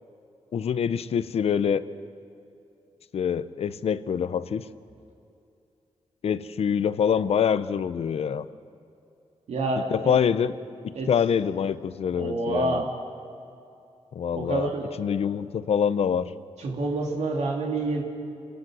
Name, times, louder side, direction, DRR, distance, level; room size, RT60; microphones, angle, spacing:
voice 1, 0.5-1.8 3.1-4.6 6.2-8.5 9.9-10.5 10.8-12.8 14.1-14.7 15.0-16.3, left 7 dB, 65° left, 14 dB, 0.7 m, -25 dB
voice 2, 9.5-10.2 10.9-11.1 12.1-12.9 14.3-15.0 16.6-18.0, right 2 dB, 75° right, 0 dB, 2.8 m, -28 dB
29.0 x 18.5 x 6.3 m, 2.6 s
wide cardioid pair, 140°, 11 cm